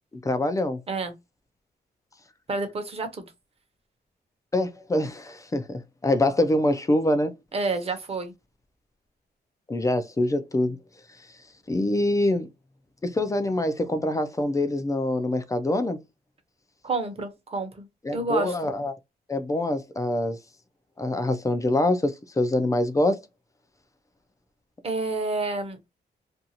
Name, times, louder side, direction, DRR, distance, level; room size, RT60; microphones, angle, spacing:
voice 1, 0.2-0.8 4.5-7.3 9.7-10.8 11.7-12.5 13.0-16.0 18.0-18.9 19.3-20.4 21.0-23.2, left 1 dB, 20° left, 0.4 m, -25 dB
voice 2, 2.5-3.3 7.5-8.3 16.8-18.5 24.8-25.8, right 3 dB, 35° right, 0.8 m, -29 dB
2.6 x 2.3 x 2.7 m
wide cardioid pair, 145°, 17 cm